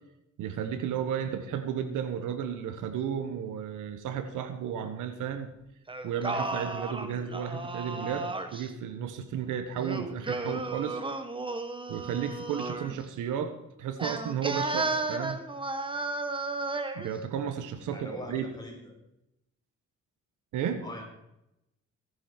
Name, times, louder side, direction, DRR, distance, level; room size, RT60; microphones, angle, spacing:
voice 1, 0.4-5.5 6.0-11.0 11.9-13.5 13.8-15.4 16.9-18.5 20.5-20.8, right 8 dB, 85° right, 9 dB, 1.5 m, -33 dB
Singing, 5.9-8.7 9.8-13.0 14.0-17.1, right 2 dB, 15° right, 1.4 m, -34 dB
voice 2, 17.9-18.9 20.8-21.0, left 1 dB, 15° left, 1 dB, 4.6 m, -42 dB
17.5 x 10.5 x 4.6 m, 0.86 s
cardioid pair, 90°, 30 cm